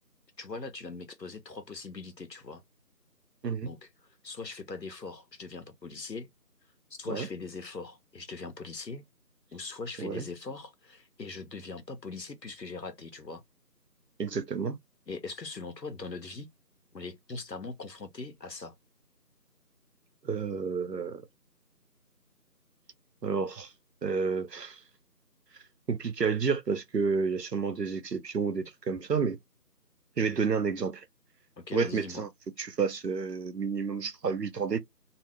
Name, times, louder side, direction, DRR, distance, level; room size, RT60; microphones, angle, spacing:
voice 1, 0.4-2.6 3.6-6.3 7.0-9.0 9.5-13.4 15.1-16.5 16.9-18.7 31.6-32.2, left 4 dB, 85° left, 1.0 m, -41 dB
voice 2, 14.2-14.8 20.2-21.2 23.2-23.7 24.0-24.8 25.9-29.4 30.2-31.0 31.7-32.3 32.6-34.8, right 5 dB, 80° right, 0.7 m, -30 dB
2.7 x 2.0 x 3.2 m
figure-of-eight pair, 170°, 49 cm